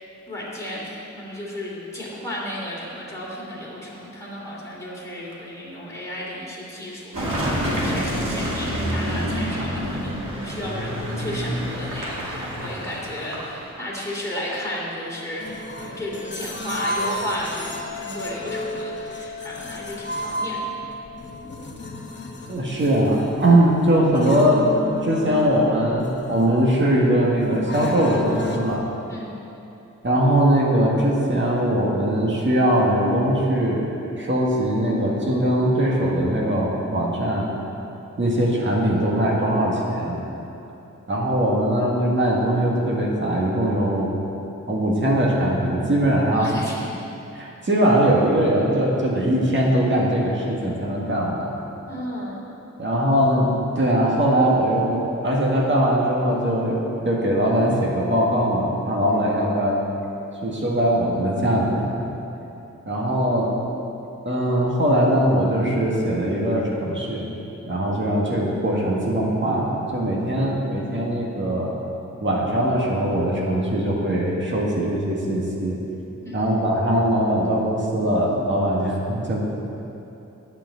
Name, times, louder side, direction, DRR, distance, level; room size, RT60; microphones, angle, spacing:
voice 1, 0.3-20.7 29.1-29.3 46.3-46.9 51.9-52.4 59.0-59.2 76.2-76.8, left 1 dB, 10° left, -6 dB, 2.9 m, -33 dB
Car passing by / Engine, 7.1-13.7, equal, 90° right, 2.4 m, -27 dB
sound 1, 15.4-28.7, left 1 dB, 35° left, 1.1 m, -32 dB
voice 2, 22.5-24.7 25.0-28.8 30.0-33.9 34.2-37.5 38.2-40.2 41.1-44.1 44.7-46.5 47.3-51.6 52.8-59.8 60.4-62.0 62.9-63.5 64.3-67.3 67.7-71.7 72.2-75.8 76.3-79.4, right 1 dB, 40° right, -3 dB, 1.8 m, -21 dB
10.0 x 6.0 x 8.3 m, 3.0 s
wide cardioid pair, 115°, 31 cm